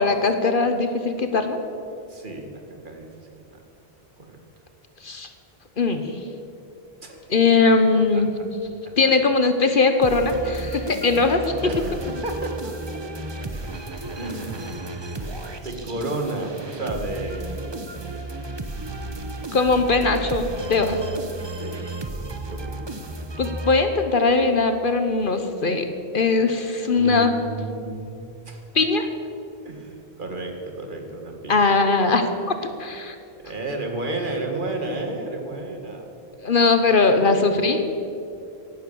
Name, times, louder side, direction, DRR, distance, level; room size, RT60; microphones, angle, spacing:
voice 1, 0.0-1.6 5.0-5.3 5.8-6.1 7.3-8.3 9.0-11.4 19.5-21.0 23.4-25.9 26.1-27.3 28.7-29.1 31.5-33.1 36.4-37.8, left 3 dB, 55° left, 8 dB, 1.2 m, -20 dB
voice 2, 2.1-3.1 3.5-3.6 4.2-4.4 7.0-7.3 8.9-9.0 11.6-13.5 14.1-14.8 15.6-17.8 19.3-19.5 21.6-22.1 22.5-22.9 26.9-28.6 29.6-31.7 33.4-36.1 37.2-37.8, right 2 dB, 50° right, 2 dB, 2.0 m, -32 dB
sound 1, 10.0-24.3, right 2 dB, 25° right, 1.0 m, -33 dB
16.5 x 11.0 x 7.0 m, 2.7 s
omnidirectional pair, 1.1 m